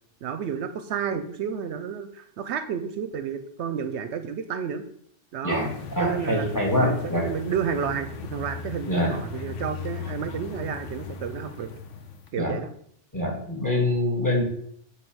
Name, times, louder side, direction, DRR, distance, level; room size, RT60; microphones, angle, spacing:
voice 1, 0.2-4.8 5.3-5.7 6.0-6.5 6.7-11.7 12.3-12.7, right 7 dB, 70° right, 10 dB, 0.8 m, -31 dB
voice 2, 5.4-7.3 8.9-9.2 12.3-12.6 13.1-14.4, left 1 dB, 15° left, 0 dB, 1.9 m, -25 dB
sound 1, 5.5-12.3, left 6 dB, 80° left, 1.1 m, -38 dB
7.8 x 3.2 x 6.2 m, 0.64 s
omnidirectional pair, 1.2 m